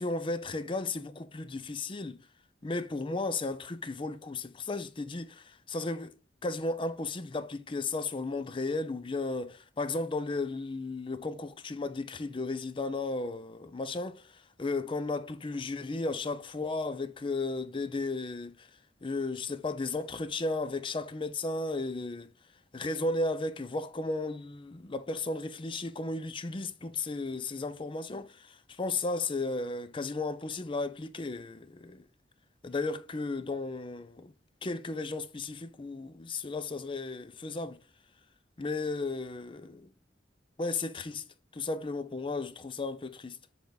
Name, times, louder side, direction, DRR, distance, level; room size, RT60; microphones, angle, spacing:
voice 1, 0.0-2.2 2.6-6.2 6.4-18.7 19.0-22.3 22.7-32.1 32.6-34.3 34.6-37.8 38.6-39.9 40.6-41.3 41.5-43.4, left 3 dB, 30° left, 0.5 m, -34 dB
6.9 x 3.7 x 3.9 m
head